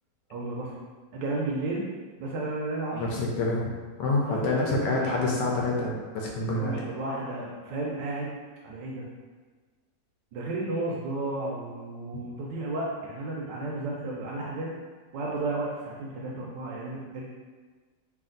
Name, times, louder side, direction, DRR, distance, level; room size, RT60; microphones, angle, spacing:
voice 1, 0.3-0.8 1.1-1.8 2.2-3.1 4.2-5.1 6.6-8.3 8.6-9.1 10.3-14.7 15.1-17.2, right 2 dB, 90° right, -4 dB, 1.3 m, -33 dB
voice 2, 2.9-3.7 4.0-6.7, left 2 dB, 80° left, -2 dB, 1.2 m, -27 dB
3.3 x 2.5 x 3.8 m, 1.4 s
omnidirectional pair, 1.9 m